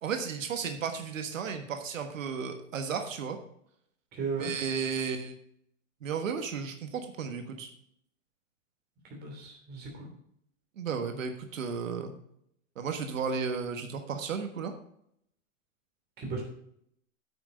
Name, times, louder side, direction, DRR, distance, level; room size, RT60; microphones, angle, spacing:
voice 1, 0.0-3.4 4.3-5.3 6.0-7.7 10.8-12.1 12.8-14.7, right 6 dB, 90° right, 6 dB, 1.4 m, -34 dB
voice 2, 4.1-4.5 9.1-10.1 16.2-16.4, right 4 dB, 25° right, 1 dB, 3.0 m, -36 dB
9.0 x 6.2 x 5.1 m, 0.72 s
hypercardioid pair, 150°, 38 cm